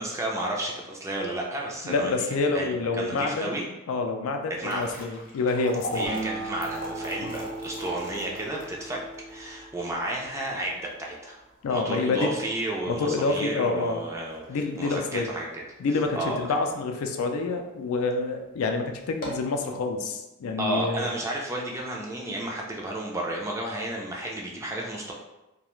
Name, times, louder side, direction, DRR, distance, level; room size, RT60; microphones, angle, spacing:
voice 1, 0.0-3.7 4.5-5.0 5.9-9.0 9.3-11.4 11.7-14.4 14.8-15.6 15.9-16.5 20.6-25.1, right 1 dB, 15° right, -2 dB, 0.3 m, -32 dB
voice 2, 1.8-3.6 3.9-6.1 7.2-7.3 11.6-12.3 12.9-14.0 14.5-15.3 15.8-21.0, left 3 dB, 85° left, 4 dB, 0.4 m, -27 dB
sound 1, 4.4-16.7 17.2-17.3 18.0-18.1 18.5-18.6 19.0-19.6, equal, 45° left, 0.6 m, -41 dB
Acoustic guitar, 6.0-10.9, right 3 dB, 90° right, 0.6 m, -38 dB
2.3 x 2.2 x 3.0 m, 0.98 s
head